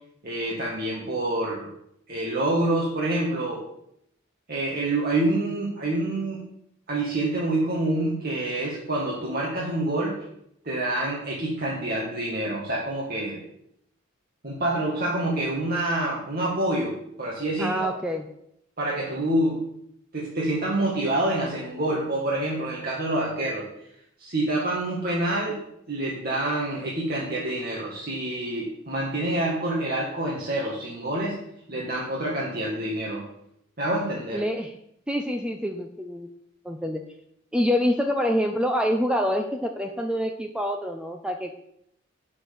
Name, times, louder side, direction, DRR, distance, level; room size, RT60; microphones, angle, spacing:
voice 1, 0.2-1.7 2.1-3.6 4.5-6.4 6.9-10.2 10.6-13.4 14.4-17.9 18.8-19.6 20.1-23.7 24.2-25.6 25.9-31.4 31.7-33.2 33.8-34.4, right 1 dB, 45° right, -5 dB, 1.9 m, -27 dB
voice 2, 17.6-18.3 34.3-34.7 35.1-36.3 36.6-37.0 37.5-41.5, equal, 5° right, 4 dB, 0.6 m, -26 dB
8.9 x 6.3 x 6.7 m, 0.75 s
head